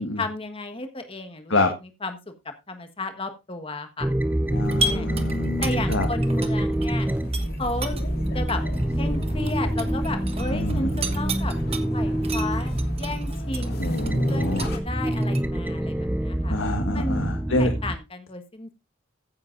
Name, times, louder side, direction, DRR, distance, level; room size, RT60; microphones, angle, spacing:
voice 1, 0.0-1.5 2.0-2.2 2.7-4.1 4.8-5.1 5.6-7.1 7.6-8.0 8.3-8.6 9.0-11.5 11.9-14.0 14.3-16.6 16.9-18.7, left 2 dB, 30° left, 8 dB, 1.4 m, -33 dB
sound 1, 4.0-18.0, right 1 dB, 10° right, 0.5 m, -26 dB
voice 2, 4.5-6.1 10.5-11.2 13.6-14.7 16.5-17.7, left 1 dB, 75° left, 4 dB, 1.5 m, -27 dB
sound 2, 4.5-14.8, left 1 dB, 50° left, 2.1 m, -38 dB
sound 3, 4.7-6.9 7.2-11.8 12.2-15.4, right 3 dB, 30° right, 1.2 m, -33 dB
15.0 x 9.7 x 2.6 m, 0.25 s
head